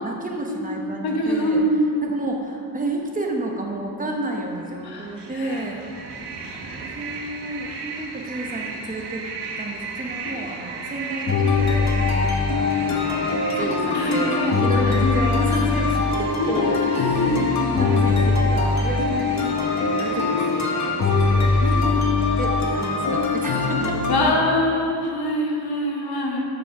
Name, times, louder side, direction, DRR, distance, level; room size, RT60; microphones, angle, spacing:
voice 1, 0.0-1.6 2.0-5.8 6.9-9.2 9.6-13.3 13.5-14.4 14.6-17.5 17.8-21.0 21.2-21.9 22.3-24.4, right 2 dB, 20° right, 0 dB, 0.9 m, -31 dB
voice 2, 1.0-1.9 4.8-5.6 6.5-6.8 13.9-15.2 16.4-18.1 21.6-22.1 24.1-26.4, left 1 dB, 65° left, -1 dB, 1.4 m, -24 dB
sound 1, 4.7-21.8, right 4 dB, 90° right, 1.1 m, -36 dB
sound 2, 11.3-24.2, left 4 dB, 45° left, 1.0 m, -22 dB
6.9 x 5.9 x 5.7 m, 2.4 s
wide cardioid pair, 155°, 40 cm